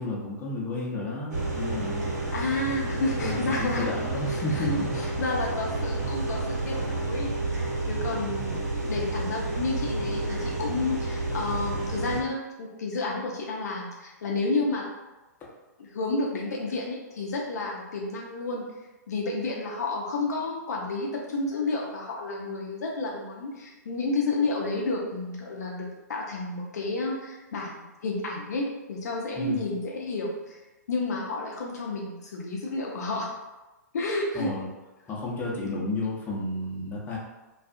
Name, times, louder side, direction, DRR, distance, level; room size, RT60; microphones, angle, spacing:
voice 1, 0.0-2.1 2.9-5.0 15.4-15.5 29.3-29.7 34.3-34.6 35.1-37.2, left 2 dB, 20° left, -4 dB, 0.7 m, -32 dB
sound 1, 1.3-12.2, right 2 dB, 75° right, 0.8 m, -30 dB
voice 2, 2.3-3.9 4.3-7.3 7.9-8.6 8.9-14.8 15.9-18.7 19.1-30.6 30.9-33.3 33.9-34.6, left 2 dB, 65° left, -1 dB, 0.5 m, -31 dB
2.3 x 2.3 x 2.5 m, 1.1 s
figure-of-eight pair, 110°, 9 cm